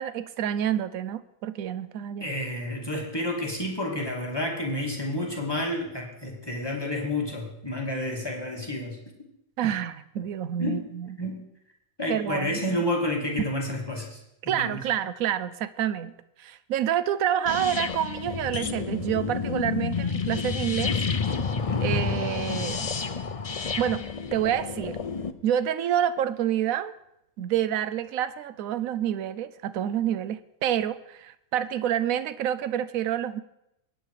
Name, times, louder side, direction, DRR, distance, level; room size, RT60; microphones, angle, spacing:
voice 1, 0.0-2.3 9.6-11.1 12.1-12.8 14.5-16.1 16.4-21.0 21.8-22.9 23.8-25.0 25.4-26.9 27.4-33.4, right 10 dB, 75° right, 14 dB, 1.1 m, -28 dB
voice 2, 2.2-9.0 9.6-9.7 10.6-10.8 11.2-11.4 12.0-14.2 14.4-14.8, left 1 dB, 15° left, -1 dB, 2.5 m, -30 dB
sound 1, 17.5-25.3, left 5 dB, 35° left, 0.6 m, -29 dB
23.0 x 9.6 x 4.9 m, 0.83 s
omnidirectional pair, 1.5 m